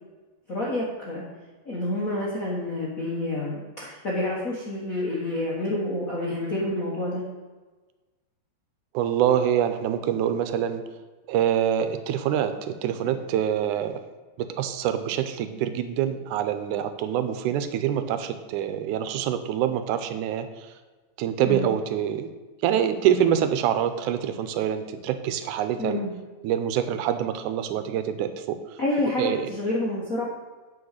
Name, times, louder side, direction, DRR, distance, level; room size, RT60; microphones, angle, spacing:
voice 1, 0.5-1.2 1.6-7.2 21.4-21.7 25.8-26.1 28.8-30.2, left 1 dB, 50° left, -5 dB, 1.0 m, -28 dB
voice 2, 8.9-10.8 11.3-14.0 14.4-20.7 21.2-22.3 22.6-26.0 26.4-28.8 29.2-29.4, right 10 dB, 85° right, 10 dB, 2.1 m, -25 dB
8.7 x 4.8 x 6.5 m, 1.3 s
omnidirectional pair, 3.5 m